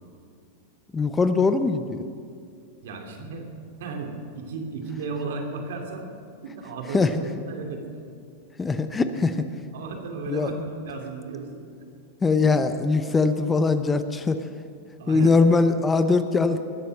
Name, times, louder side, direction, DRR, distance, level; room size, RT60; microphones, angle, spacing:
voice 1, 0.9-2.0 6.9-7.1 8.6-9.5 10.3-10.5 12.2-14.4 15.1-16.6, left 4 dB, 15° left, 10 dB, 0.7 m, -21 dB
voice 2, 2.8-6.0 6.4-7.8 9.7-11.7 15.0-15.3, right 4 dB, 75° right, 3 dB, 2.6 m, -35 dB
20.0 x 8.2 x 6.6 m, 2.3 s
hypercardioid pair, 120°, 0 cm